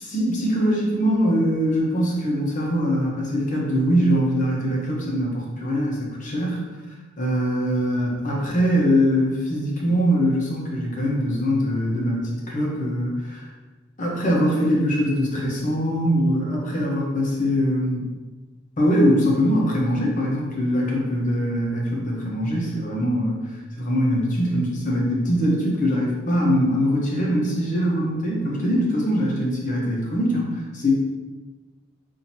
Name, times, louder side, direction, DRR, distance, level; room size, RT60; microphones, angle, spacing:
voice 1, 0.1-6.7 7.2-13.4 14.0-18.1 18.8-23.4 23.8-30.9, equal, 40° left, -3 dB, 1.0 m, -22 dB
5.7 x 2.8 x 2.8 m, 1.2 s
head